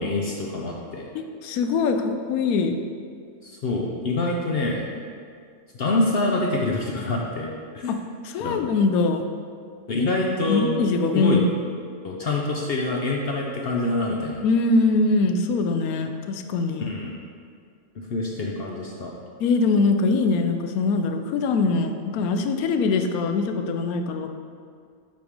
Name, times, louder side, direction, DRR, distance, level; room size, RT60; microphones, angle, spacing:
voice 1, 0.0-1.1 3.4-4.8 5.7-7.5 7.7-8.0 8.4-8.6 9.9-10.7 11.1-11.4 12.0-14.4 16.8-17.1 18.1-19.1, left 2 dB, 60° left, -1 dB, 0.6 m, -26 dB
voice 2, 1.1-2.8 7.9-8.0 8.2-9.3 10.0-10.1 10.5-11.4 14.4-16.9 19.4-24.3, left 3 dB, 75° left, 6 dB, 1.0 m, -22 dB
7.6 x 3.5 x 5.0 m, 2.2 s
omnidirectional pair, 1.6 m